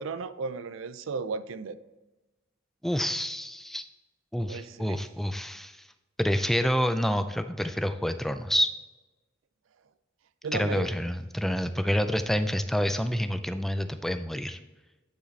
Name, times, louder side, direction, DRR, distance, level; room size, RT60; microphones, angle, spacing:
voice 1, 0.0-1.8 4.4-5.0 10.4-10.9, right 4 dB, 85° right, 0.4 m, -35 dB
voice 2, 2.8-3.9 4.3-5.9 6.2-8.7 10.5-14.6, equal, ahead, 0.3 m, -28 dB
9.2 x 5.0 x 3.2 m
head